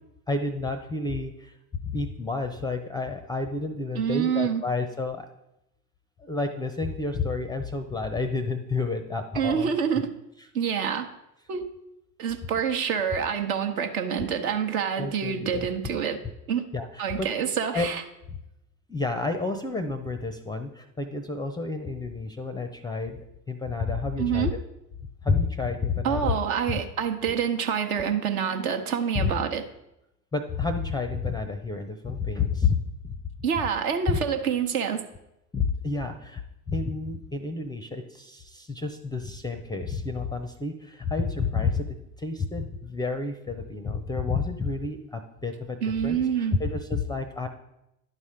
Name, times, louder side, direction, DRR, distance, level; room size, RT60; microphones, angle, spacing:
voice 1, 0.3-1.5 1.8-5.3 6.2-9.7 15.0-15.7 16.7-17.3 17.7-17.9 18.3-18.4 18.9-23.2 23.5-24.5 25.2-26.4 26.7-26.8 29.1-29.3 30.3-32.8 33.0-33.2 34.1-34.2 35.5-36.4 36.7-41.9 42.2-45.8 46.0-47.5, left 4 dB, 10° left, 8 dB, 0.4 m, -29 dB
voice 2, 3.9-4.6 9.3-10.1 10.5-11.1 11.5-11.7 12.2-16.2 16.5-16.7 17.0-18.0 24.2-24.6 26.0-29.6 33.4-35.0 45.8-46.6, right 7 dB, 65° right, 6 dB, 1.0 m, -27 dB
10.5 x 4.2 x 4.9 m, 0.86 s
figure-of-eight pair, 65°, 47 cm